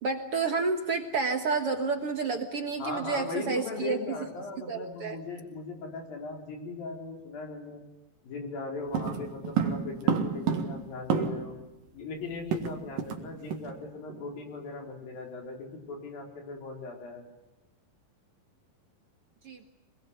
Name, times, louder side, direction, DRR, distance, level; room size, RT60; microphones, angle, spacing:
voice 1, 0.0-4.0 4.7-5.2 19.5-19.7, right 4 dB, 50° right, 5 dB, 1.9 m, -30 dB
voice 2, 2.8-7.8 8.2-11.6 11.9-17.2, left 3 dB, 75° left, 2 dB, 6.2 m, -38 dB
sound 1, 8.9-11.6 11.9-12.0 12.2-13.2 13.5-13.7 14.1-14.3, right 7 dB, 70° right, 3.5 m, -30 dB
25.5 x 21.5 x 8.0 m, 1.0 s
omnidirectional pair, 4.1 m